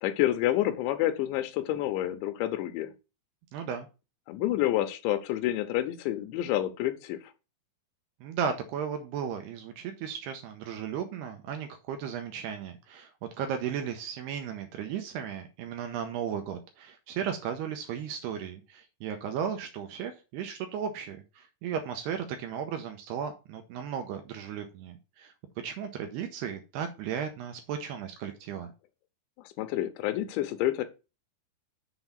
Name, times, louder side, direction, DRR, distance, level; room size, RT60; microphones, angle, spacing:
voice 1, 0.0-2.9 4.3-7.2 29.6-30.8, left 13 dB, 80° left, 10 dB, 2.9 m, -28 dB
voice 2, 3.5-3.9 8.2-13.1 13.4-25.3 25.6-28.7, right 8 dB, 80° right, 6 dB, 2.5 m, -35 dB
7.1 x 3.9 x 6.6 m, 0.30 s
omnidirectional pair, 5.4 m